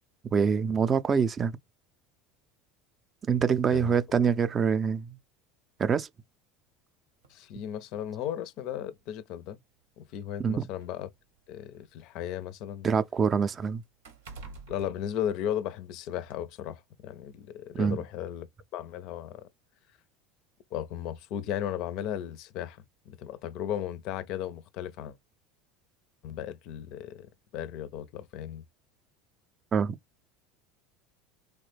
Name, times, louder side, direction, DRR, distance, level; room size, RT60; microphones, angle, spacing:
voice 1, 0.3-1.5 3.3-5.2 5.8-6.1 10.4-10.7 12.8-13.8 17.8-18.0 29.7-30.0, right 6 dB, 30° right, 0.3 m, -25 dB
sound 1, 7.2-7.4 8.5-8.6 9.0-9.1 10.1-12.1 12.4-15.9 16.3-16.4, right 4 dB, 85° right, 0.8 m, -50 dB
voice 2, 7.3-9.6 10.0-11.1 11.5-12.9 14.7-18.5 18.7-19.5 20.7-22.8 23.1-25.1 26.2-27.3 27.5-28.6, left 10 dB, 60° left, 0.4 m, -35 dB
3.0 x 2.1 x 3.2 m
hypercardioid pair, 90°, 0 cm